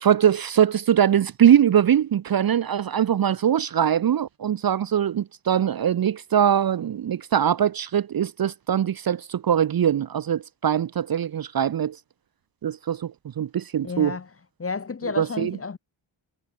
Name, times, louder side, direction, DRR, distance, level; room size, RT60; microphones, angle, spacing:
voice 1, 0.0-12.0 12.6-13.1 13.4-14.2 15.2-15.5, right 9 dB, 50° right, 0.5 m, -22 dB
voice 2, 13.8-14.3 14.6-15.8, left 4 dB, 30° left, 0.6 m, -31 dB
wide cardioid pair, 100°, 50 cm